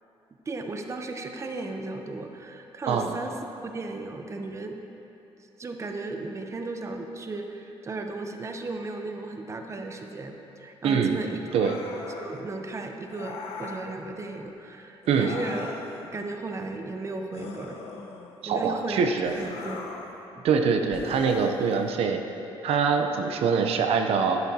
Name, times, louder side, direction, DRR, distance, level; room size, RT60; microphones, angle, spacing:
voice 1, 0.5-3.4 3.6-4.8 5.6-11.5 12.2-15.7 16.0-17.8 18.5-19.8 20.4-20.5, right 3 dB, 30° right, 4 dB, 0.7 m, -35 dB
voice 2, 2.9-3.2 10.8-11.2 11.5-11.8 15.1-15.3 18.4-19.3 20.4-22.2 22.6-24.4, right 6 dB, 70° right, 4 dB, 0.6 m, -24 dB
sound 1, 11.4-12.4 13.1-13.9 15.0-16.1 17.3-18.5 19.2-20.2 20.9-21.9, left 4 dB, 80° left, 1.0 m, -39 dB
11.0 x 11.0 x 2.8 m, 3.0 s
cardioid pair, 105°, 10 cm